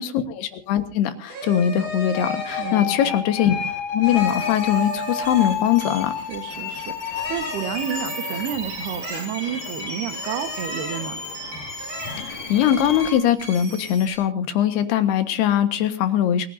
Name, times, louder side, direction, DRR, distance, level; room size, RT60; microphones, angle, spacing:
voice 1, 0.0-3.5 3.9-6.1 12.2-16.5, left 10 dB, 70° left, 9 dB, 3.4 m, -21 dB
sound 1, 1.3-2.9 4.0-5.7 7.1-8.7 9.0-9.7 10.1-11.1 11.8-12.3, equal, 55° right, 9.1 m, -35 dB
sound 2, 2.1-13.2, left 7 dB, 55° left, 4.1 m, -31 dB
voice 2, 2.6-3.2 6.3-11.2, right 9 dB, 70° right, 9 dB, 3.2 m, -31 dB
sound 3, 4.2-14.2, right 1 dB, 30° right, 5.3 m, -37 dB
28.0 x 16.5 x 2.7 m, 0.35 s
omnidirectional pair, 5.0 m